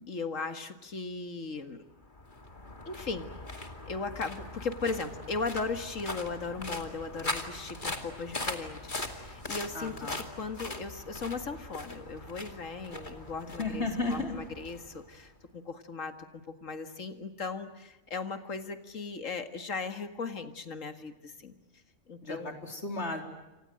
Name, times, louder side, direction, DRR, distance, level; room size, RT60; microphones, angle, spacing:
voice 1, 0.1-1.8 2.9-21.5 22.1-22.5, left 4 dB, 85° left, 9 dB, 2.3 m, -37 dB
sound 1, 2.0-15.4, left 2 dB, 40° left, 2.7 m, -41 dB
voice 2, 9.7-10.2 13.6-14.4 22.2-23.2, left 3 dB, 60° left, 4 dB, 4.2 m, -34 dB
29.0 x 26.0 x 7.8 m, 1.0 s
omnidirectional pair, 1.3 m